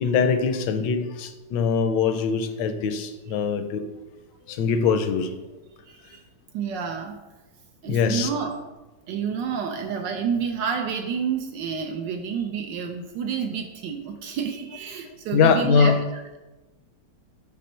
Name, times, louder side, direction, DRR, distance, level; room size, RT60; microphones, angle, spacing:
voice 1, 0.0-3.8 4.5-5.3 7.9-8.3 15.3-16.0, left 5 dB, 75° left, 8 dB, 1.2 m, -22 dB
voice 2, 5.9-6.2 6.5-7.2 7.8-8.6 9.1-16.4, right 6 dB, 70° right, 4 dB, 1.2 m, -29 dB
6.1 x 5.2 x 4.4 m, 1.1 s
omnidirectional pair, 2.1 m